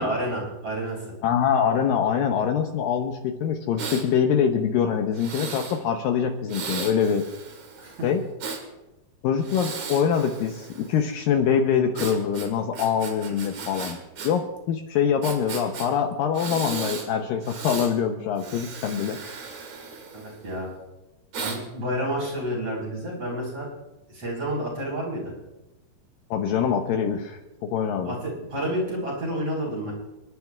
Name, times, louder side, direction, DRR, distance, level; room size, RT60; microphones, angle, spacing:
voice 1, 0.0-1.0 7.8-8.1 20.1-20.7 21.4-23.7 24.1-25.3 28.0-29.9, equal, 35° right, -4 dB, 5.4 m, -30 dB
voice 2, 1.2-7.3 8.0-8.2 9.2-14.0 14.2-19.2 26.3-28.2, left 7 dB, 75° left, 4 dB, 2.3 m, -24 dB
Breathing, 3.8-4.1 5.1-5.8 6.5-8.6 9.4-11.0 11.9-14.3 14.6-14.7 15.2-15.9 16.3-17.1 17.4-17.9 18.4-20.5 21.3-21.6, right 5 dB, 55° right, 2.7 m, -36 dB
29.5 x 11.0 x 2.4 m, 0.99 s
omnidirectional pair, 4.5 m